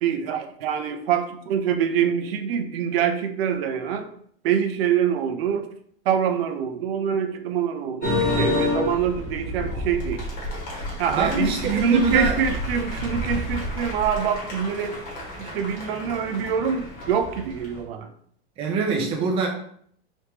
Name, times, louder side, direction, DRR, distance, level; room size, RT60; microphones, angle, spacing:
voice 1, 0.0-4.1 4.4-5.7 6.1-10.3 11.0-15.0 15.4-18.1, right 8 dB, 75° right, 7 dB, 0.6 m, -25 dB
sound 1, 8.0-17.8, left 2 dB, 25° left, 1.1 m, -30 dB
voice 2, 11.1-12.4 18.6-19.5, right 4 dB, 20° right, 1 dB, 0.5 m, -24 dB
3.4 x 3.0 x 2.9 m, 0.63 s
supercardioid pair, 155°, 30 cm